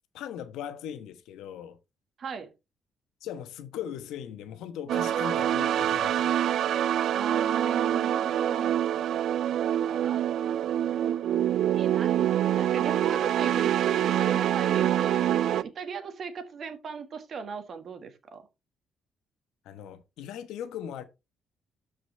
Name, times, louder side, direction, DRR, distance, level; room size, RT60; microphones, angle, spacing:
voice 1, 0.1-1.8 3.2-6.4 19.6-21.0, left 9 dB, 90° left, 1.1 m, -39 dB
voice 2, 2.2-2.5 7.1-8.7 9.7-10.3 10.9-11.4 11.7-12.3 12.5-18.4, right 6 dB, 55° right, 1.7 m, -38 dB
sound 1, 4.9-15.6, right 11 dB, 75° right, 0.4 m, -25 dB
12.5 x 5.0 x 3.3 m
cardioid pair, 90°, 0 cm